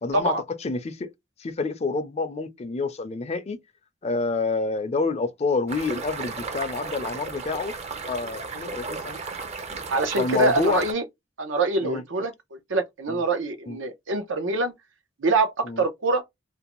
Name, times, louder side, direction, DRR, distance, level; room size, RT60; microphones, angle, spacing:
voice 1, 0.0-1.1 1.4-3.6 4.0-7.8 8.1-9.2 10.2-10.8 11.8-12.0 13.1-13.2 13.7-13.8 15.6-15.8, left 4 dB, 35° left, 0.4 m, -28 dB
sound 1, 5.7-10.9, right 4 dB, 35° right, 0.5 m, -35 dB
voice 2, 9.9-11.0 11.4-14.7 15.2-16.2, right 3 dB, 90° right, 0.8 m, -25 dB
2.6 x 2.2 x 2.9 m
head